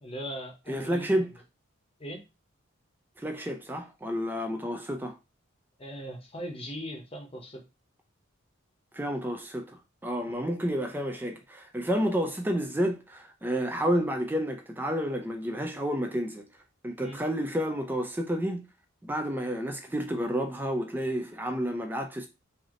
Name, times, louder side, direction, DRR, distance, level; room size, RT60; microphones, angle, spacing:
voice 1, 0.0-1.3 2.0-2.2 5.8-7.6 10.3-10.4 17.0-17.2, equal, 25° left, 0.8 m, -39 dB
voice 2, 0.7-1.3 3.2-5.2 8.9-16.5 16.8-18.7 19.0-22.3, equal, 10° right, 0.4 m, -30 dB
3.3 x 2.6 x 3.7 m
head